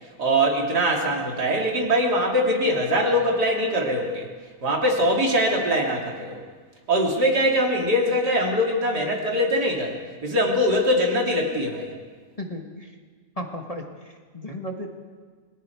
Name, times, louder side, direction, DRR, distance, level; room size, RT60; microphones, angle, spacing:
voice 1, 0.2-4.3 4.6-6.4 6.9-11.9, equal, 75° right, -1 dB, 3.6 m, -22 dB
voice 2, 12.4-13.0 13.3-14.9, equal, 20° left, 2 dB, 1.6 m, -35 dB
28.0 x 21.0 x 4.7 m, 1.5 s
omnidirectional pair, 1.8 m